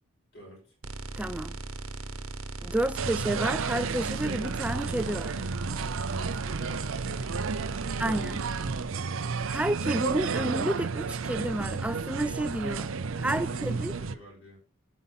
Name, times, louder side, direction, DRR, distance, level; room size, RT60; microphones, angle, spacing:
voice 1, 0.3-0.8 6.1-7.4 7.8-8.1 12.8-14.6, left 1 dB, 50° left, 6.4 m, -51 dB
sound 1, 0.8-8.8, right 2 dB, 85° right, 1.1 m, -38 dB
voice 2, 1.2-1.5 2.6-5.4 8.0-8.4 9.5-12.9 13.2-13.9, right 1 dB, 5° right, 0.4 m, -30 dB
sound 2, 3.0-14.1, right 5 dB, 70° right, 0.5 m, -32 dB
13.5 x 5.5 x 4.1 m
head